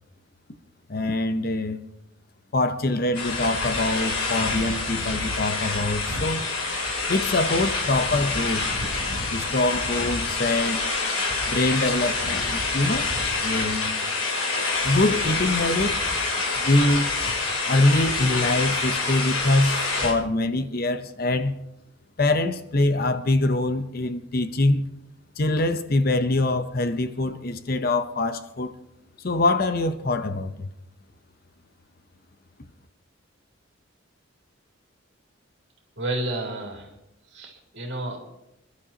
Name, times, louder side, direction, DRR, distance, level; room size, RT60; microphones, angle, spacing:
voice 1, 0.9-1.8 2.5-6.5 7.1-8.7 9.3-10.8 11.5-13.1 13.4-14.0 14.8-16.0 16.6-17.1 17.7-21.6 22.2-24.9 25.4-28.7 29.2-30.7, left 2 dB, 45° left, 0.7 m, -24 dB
sound 1, 3.1-20.1, left 3 dB, 85° left, 3.2 m, -27 dB
voice 2, 36.0-37.0 37.3-38.2, right 1 dB, 60° right, 2.7 m, -31 dB
26.5 x 11.5 x 2.9 m
head